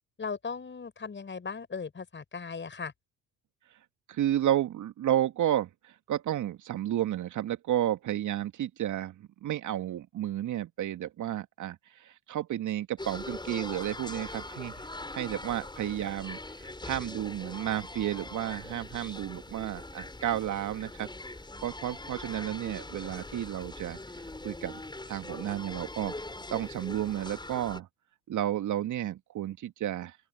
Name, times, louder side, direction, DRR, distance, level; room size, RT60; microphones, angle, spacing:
voice 1, 0.2-2.9, left 5 dB, 30° left, 5.6 m, -37 dB
voice 2, 4.1-14.7 15.1-21.1 21.6-24.0 24.4-24.8 25.1-26.1 26.5-27.9 28.3-30.2, right 12 dB, 50° right, 2.6 m, -32 dB
sound 1, 13.0-27.8, left 2 dB, 10° left, 7.8 m, -42 dB
open air
figure-of-eight pair, 55°, 40 cm